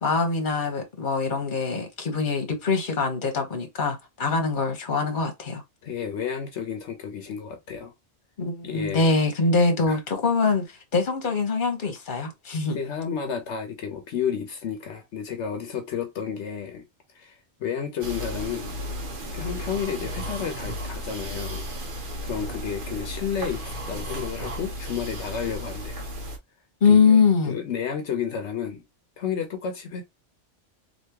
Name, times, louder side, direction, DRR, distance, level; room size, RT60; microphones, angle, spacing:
voice 1, 0.0-5.6 8.4-12.8 26.8-27.6, left 4 dB, 45° left, 1.1 m, -23 dB
voice 2, 5.8-7.9 8.6-9.1 9.9-10.0 12.7-16.8 17.1-18.7 19.3-21.6 22.2-26.0 26.9-27.2 27.4-28.8 29.2-30.0, left 7 dB, 75° left, 1.0 m, -31 dB
sound 1, 18.0-26.4, equal, 50° right, 1.0 m, -34 dB
3.4 x 2.8 x 2.8 m
omnidirectional pair, 1.2 m